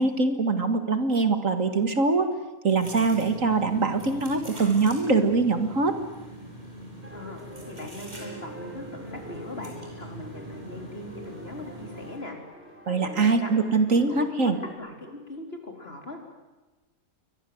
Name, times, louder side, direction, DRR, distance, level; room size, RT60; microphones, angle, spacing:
voice 1, 0.0-2.3 2.6-6.0 12.9-14.6, right 3 dB, 65° right, 8 dB, 2.3 m, -23 dB
sound 1, 2.8-12.2, equal, 30° right, 8.2 m, -43 dB
sound 2, 7.0-14.7, right 1 dB, 10° right, 5.2 m, -45 dB
voice 2, 7.7-12.4 12.9-13.5 13.9-16.2, left 2 dB, 40° left, 3 dB, 4.7 m, -40 dB
29.0 x 23.5 x 8.0 m, 1.1 s
omnidirectional pair, 1.5 m